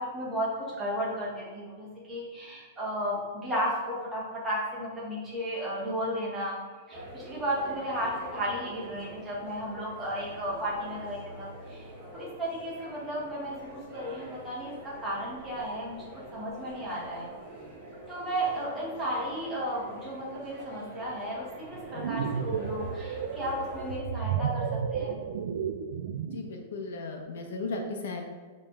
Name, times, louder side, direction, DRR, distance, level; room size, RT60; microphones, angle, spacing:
voice 1, 0.0-6.6 6.9-17.3 18.1-25.2, equal, 10° right, -6 dB, 1.6 m, -34 dB
sound 1, 6.9-24.0, right 1 dB, 25° right, 1.8 m, -45 dB
sound 2, 21.7-26.5, right 7 dB, 65° right, 0.4 m, -32 dB
voice 2, 26.2-28.2, left 3 dB, 75° left, 2 dB, 1.1 m, -36 dB
5.5 x 3.5 x 4.9 m, 1.4 s
supercardioid pair, 165°, 0 cm